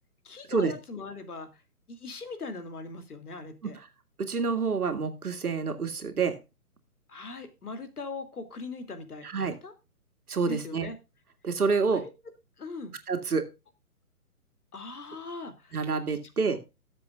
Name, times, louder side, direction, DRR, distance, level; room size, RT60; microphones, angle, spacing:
voice 1, 0.2-1.5 1.9-3.8 7.1-9.7 10.5-11.0 11.9-12.1 12.6-13.0 14.7-15.7 16.5-16.6, left 3 dB, 80° left, 8 dB, 2.8 m, -40 dB
voice 2, 4.2-6.4 9.2-9.5 10.3-10.9 11.4-12.0 13.1-13.5 15.7-16.6, right 4 dB, 75° right, 8 dB, 2.3 m, -28 dB
19.0 x 7.5 x 2.4 m, 0.26 s
hypercardioid pair, 145°, 45 cm